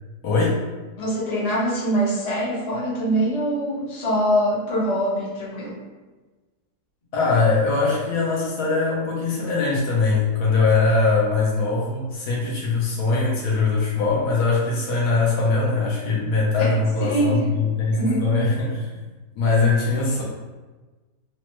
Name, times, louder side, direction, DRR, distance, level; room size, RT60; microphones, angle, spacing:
voice 1, 0.2-0.6 7.1-19.0 19.3-20.2, left 3 dB, 70° left, -4 dB, 1.2 m, -21 dB
voice 2, 1.0-5.8 17.0-17.5 18.0-18.3, right 1 dB, 30° left, -7 dB, 0.7 m, -23 dB
3.3 x 2.1 x 2.9 m, 1.2 s
omnidirectional pair, 1.9 m